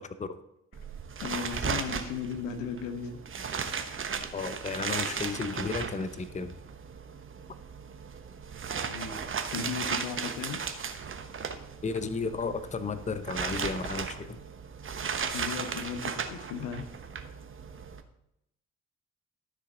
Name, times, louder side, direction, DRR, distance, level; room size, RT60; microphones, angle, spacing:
sound 1, 0.7-18.0, right 6 dB, 35° right, 1.1 m, -36 dB
voice 1, 1.2-3.2 8.8-9.2 9.5-10.6 15.3-16.9, left 6 dB, 70° left, 9 dB, 1.0 m, -36 dB
voice 2, 4.3-6.5 11.8-14.4, left 4 dB, 20° left, 11 dB, 0.8 m, -33 dB
13.0 x 6.9 x 3.8 m, 0.80 s
figure-of-eight pair, 45°, 36 cm